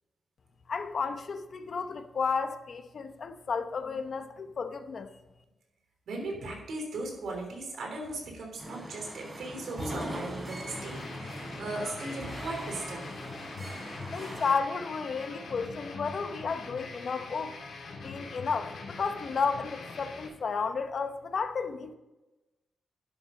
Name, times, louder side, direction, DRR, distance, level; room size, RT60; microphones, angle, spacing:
voice 1, 0.7-5.1 14.1-17.5 18.0-21.9, left 5 dB, 55° left, 0.8 m, -32 dB
voice 2, 6.1-13.1, right 2 dB, 80° right, 3.4 m, -38 dB
sound 1, 8.6-14.5, equal, 20° right, 3.5 m, -41 dB
sound 2, 10.7-20.3, left 3 dB, 80° left, 2.5 m, -43 dB
11.0 x 6.9 x 5.2 m
wide cardioid pair, 110°, 0 cm